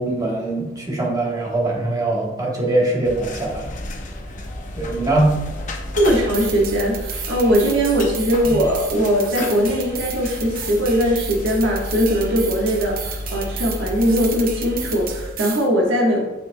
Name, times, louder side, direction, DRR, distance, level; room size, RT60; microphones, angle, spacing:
voice 1, 0.0-3.7 4.7-5.4 8.4-8.6, right 2 dB, 20° right, -3 dB, 1.4 m, -22 dB
sound 1, 3.0-15.3, left 1 dB, 40° left, 0.7 m, -32 dB
sound 2, 6.0-15.7, right 7 dB, 50° right, 0.7 m, -34 dB
voice 2, 6.0-16.2, equal, 70° right, -2 dB, 1.4 m, -20 dB
7.7 x 5.6 x 2.3 m, 1.1 s
head